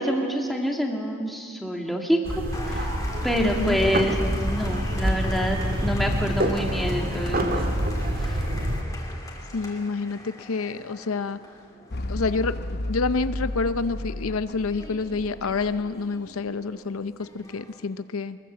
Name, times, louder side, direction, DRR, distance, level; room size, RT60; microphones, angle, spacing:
voice 1, 0.0-2.2 2.6-2.9 3.2-4.2 4.4-7.7 8.2-8.4, equal, ahead, 1 dB, 2.2 m, -27 dB
sound 1, 2.2-8.8, equal, 40° right, 2.0 m, -26 dB
Applause, 2.5-17.9, left 1 dB, 15° left, 2.9 m, -42 dB
voice 2, 3.4-3.8 9.5-11.4 12.1-18.4, left 4 dB, 75° left, 13 dB, 0.6 m, -28 dB
sound 2, 11.9-16.4, left 1 dB, 50° left, 0.8 m, -33 dB
23.5 x 21.5 x 7.5 m, 2.2 s
head